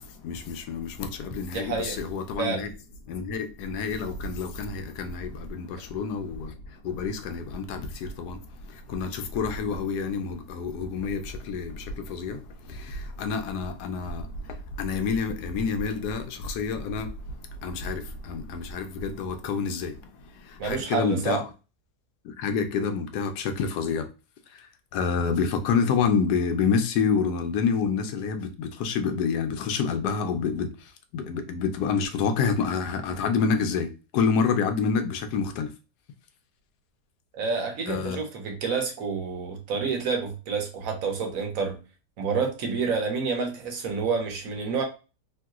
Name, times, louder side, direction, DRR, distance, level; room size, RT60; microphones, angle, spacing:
voice 1, 0.0-2.7 3.1-17.3 17.6-20.0 20.4-21.4 22.2-24.1 24.5-35.7 37.9-38.2, left 5 dB, 80° left, 1.1 m, -28 dB
voice 2, 1.5-2.0 2.4-2.6 20.6-21.4 37.3-41.8 42.2-44.8, right 5 dB, 60° right, 1.1 m, -28 dB
3.1 x 2.7 x 2.3 m
omnidirectional pair, 1.7 m